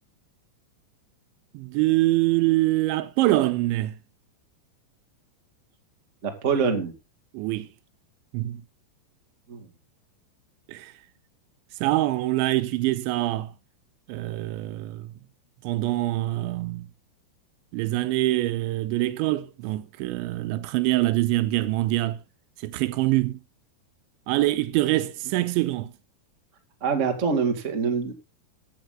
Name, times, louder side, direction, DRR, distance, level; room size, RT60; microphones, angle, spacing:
voice 1, 1.5-3.9 7.3-7.7 8.3-8.6 10.7-10.9 11.8-13.5 14.1-15.1 15.6-16.9 17.7-22.2 22.6-23.4 24.3-25.9, right 17 dB, 85° right, 3.1 m, -24 dB
voice 2, 6.2-6.9 9.5-9.7 26.8-28.1, right 5 dB, 35° right, 1.2 m, -25 dB
15.5 x 9.0 x 3.8 m
omnidirectional pair, 5.3 m